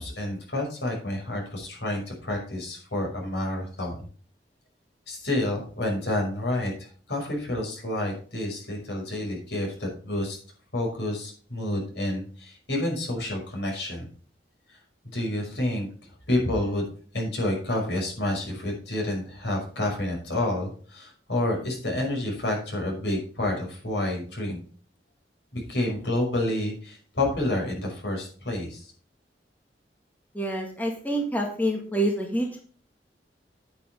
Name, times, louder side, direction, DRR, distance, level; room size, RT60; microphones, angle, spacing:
voice 1, 0.0-4.1 5.1-10.4 10.7-14.1 15.1-15.9 16.3-16.9 17.1-24.6 25.5-28.9, left 1 dB, 80° left, 1 dB, 5.7 m, -29 dB
voice 2, 30.4-32.6, right 1 dB, 10° left, 1 dB, 1.8 m, -27 dB
9.9 x 9.4 x 3.5 m, 0.42 s
head